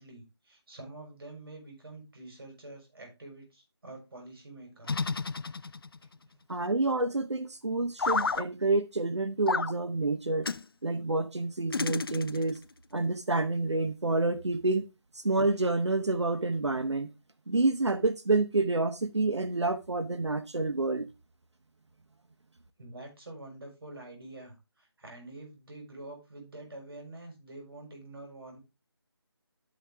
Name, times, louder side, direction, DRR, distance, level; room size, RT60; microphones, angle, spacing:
voice 1, 0.0-5.1 5.6-5.7 22.8-28.6, right 2 dB, 55° right, 4.5 m, -47 dB
sound 1, 4.8-6.1 8.0-8.4 9.5-9.7 10.4-10.6 11.7-12.6, left 4 dB, 55° left, 0.5 m, -31 dB
voice 2, 6.5-10.5 10.8-12.6 12.9-14.8 15.1-17.1 17.5-21.1, right 3 dB, 85° right, 1.1 m, -28 dB
12.5 x 5.0 x 3.4 m
figure-of-eight pair, 165°, 14 cm